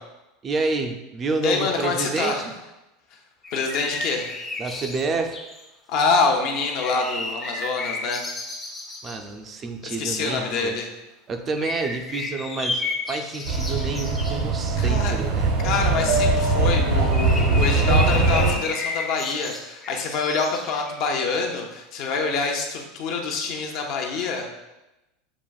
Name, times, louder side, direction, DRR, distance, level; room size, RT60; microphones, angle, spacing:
voice 1, 0.4-2.4 4.6-5.4 9.0-10.8 11.3-15.5, right 3 dB, 25° right, 5 dB, 0.4 m, -28 dB
voice 2, 1.4-2.5 3.5-4.4 5.9-8.2 9.8-10.9 14.8-15.1 15.6-24.5, left 4 dB, 55° left, 2 dB, 0.7 m, -26 dB
sound 1, 3.4-5.6 6.5-9.2 11.5-14.4 16.7-21.2, left 2 dB, 15° left, 0.7 m, -32 dB
sound 2, 13.4-18.5, right 3 dB, 75° right, 0.8 m, -21 dB
7.1 x 2.5 x 2.3 m, 0.99 s
supercardioid pair, 135°, 0 cm